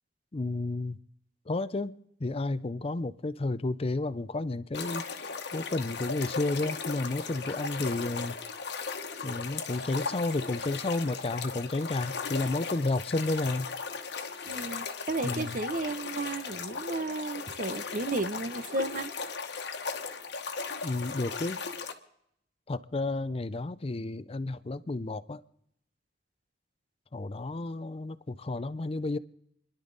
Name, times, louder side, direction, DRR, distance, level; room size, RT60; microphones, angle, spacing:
voice 1, 0.3-1.0 1.5-8.4 9.2-13.7 15.2-15.6 20.8-21.6 22.7-25.4 27.1-29.2, left 2 dB, 30° left, 0.5 m, -32 dB
sound 1, 4.7-21.9, left 5 dB, 65° left, 1.3 m, -37 dB
voice 2, 14.5-19.1, right 2 dB, 45° right, 0.9 m, -33 dB
29.0 x 11.5 x 4.0 m
head